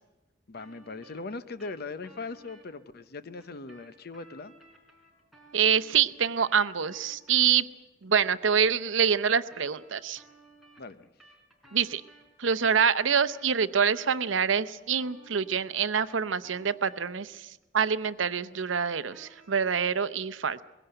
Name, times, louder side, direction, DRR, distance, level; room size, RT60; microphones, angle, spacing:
voice 1, 0.5-4.5 10.8-11.1, left 3 dB, 55° left, 12 dB, 0.9 m, -40 dB
sound 1, 0.6-2.7 3.4-7.7 8.0-12.3 13.0-17.3 17.6-19.8, right 2 dB, ahead, 4.2 m, -57 dB
voice 2, 5.5-7.6 8.0-10.2 11.7-12.0 12.4-20.6, right 7 dB, 85° right, 14 dB, 0.8 m, -26 dB
21.5 x 17.0 x 7.9 m, 1.1 s
head